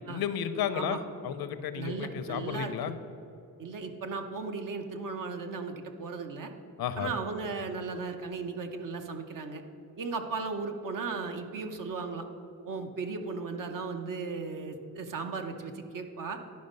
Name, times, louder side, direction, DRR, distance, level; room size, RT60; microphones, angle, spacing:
voice 1, 0.1-2.9 6.8-7.1, left 8 dB, 80° left, 11 dB, 0.7 m, -33 dB
voice 2, 1.8-2.9 3.6-6.5 7.0-9.6 10.0-12.3 12.7-16.4, right 4 dB, 60° right, 5 dB, 0.8 m, -36 dB
10.5 x 5.2 x 5.3 m, 2.8 s
cardioid pair, 110°, 36 cm